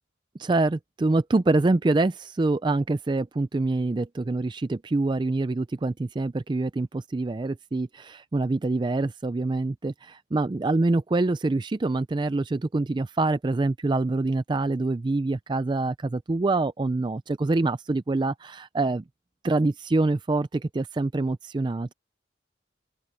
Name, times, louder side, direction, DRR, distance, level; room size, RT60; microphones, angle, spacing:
voice 1, 0.4-19.0 19.4-21.9, right 2 dB, 25° right, 0.3 m, -25 dB
open air
head